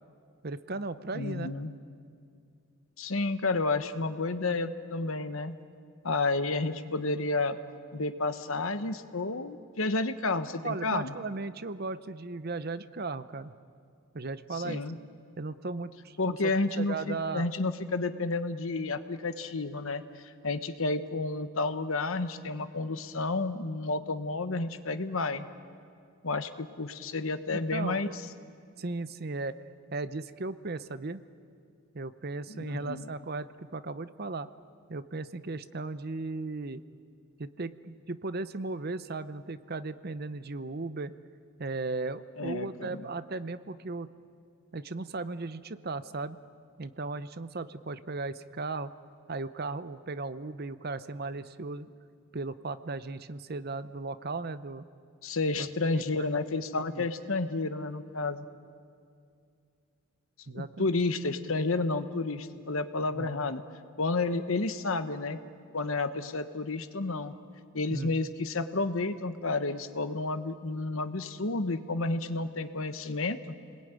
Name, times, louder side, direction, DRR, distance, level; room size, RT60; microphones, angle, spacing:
voice 1, 0.4-1.5 10.6-13.5 14.1-14.8 15.4-16.5 16.8-17.5 27.5-28.1 28.8-29.6 29.9-31.2 31.9-34.5 34.9-36.8 37.4-41.1 41.6-44.1 44.7-46.4 46.8-48.9 49.3-51.9 52.3-54.8 55.6-56.3 56.7-57.1 60.5-60.9 63.1-63.5 67.9-68.2, right 3 dB, 45° right, 13 dB, 0.7 m, -36 dB
voice 2, 1.1-1.7 3.0-5.5 6.0-7.6 7.9-11.1 14.5-15.0 16.2-25.5 26.2-28.2 32.5-33.1 42.4-43.0 55.2-58.5 60.5-63.6 64.0-65.4 65.7-67.3 67.7-73.5, left 3 dB, 70° left, 10 dB, 1.1 m, -31 dB
29.5 x 20.5 x 9.2 m, 2.4 s
head